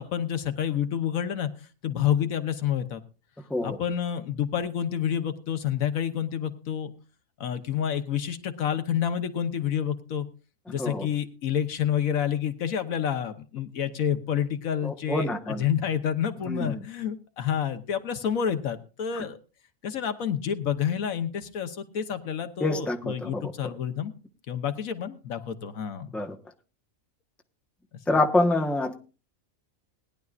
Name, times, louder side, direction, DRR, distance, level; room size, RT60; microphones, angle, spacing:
voice 1, 0.0-1.5 1.8-3.0 3.6-6.9 7.4-10.3 10.7-19.4 19.8-24.1 24.5-26.2, left 9 dB, 80° left, 9 dB, 1.4 m, -29 dB
voice 2, 10.7-11.1 14.8-15.6 16.5-16.8 19.2-19.3 22.6-23.7 26.1-26.4 28.1-28.9, left 2 dB, ahead, 2 dB, 1.0 m, -27 dB
20.0 x 10.5 x 2.5 m, 0.34 s
omnidirectional pair, 1.4 m